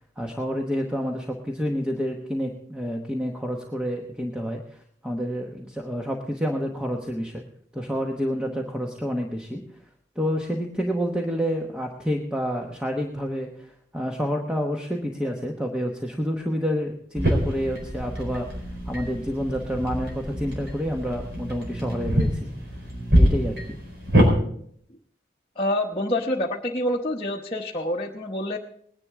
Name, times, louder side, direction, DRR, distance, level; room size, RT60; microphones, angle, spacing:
voice 1, 0.2-7.4 7.7-9.6 10.1-22.5 23.1-23.6, equal, 5° right, 1 dB, 1.1 m, -29 dB
sound 1, 17.2-24.3, equal, 75° right, 4.3 m, -25 dB
voice 2, 25.6-28.6, left 1 dB, 30° left, -4 dB, 1.0 m, -27 dB
20.0 x 10.5 x 3.6 m, 0.64 s
head